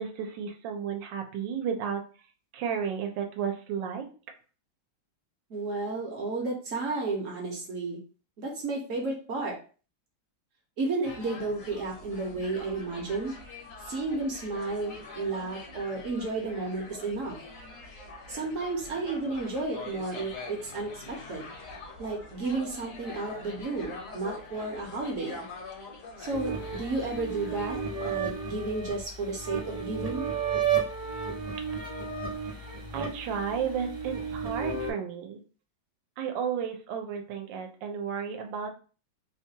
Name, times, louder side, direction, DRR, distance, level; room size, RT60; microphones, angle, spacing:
voice 1, 0.0-2.0 2.5-4.0 32.9-35.4 36.2-38.7, right 7 dB, 85° right, 4 dB, 1.3 m, -33 dB
voice 2, 5.5-8.0 8.4-9.5 10.8-13.3 13.8-17.4 18.3-21.5 22.0-25.4 26.2-27.8 28.0-30.3, right 3 dB, 60° right, -1 dB, 0.9 m, -32 dB
sound 1, 11.0-28.2, left 3 dB, 60° left, 1.0 m, -44 dB
sound 2, 26.3-34.9, right 6 dB, 35° right, 0.6 m, -33 dB
3.1 x 2.2 x 2.7 m, 0.38 s
omnidirectional pair, 1.9 m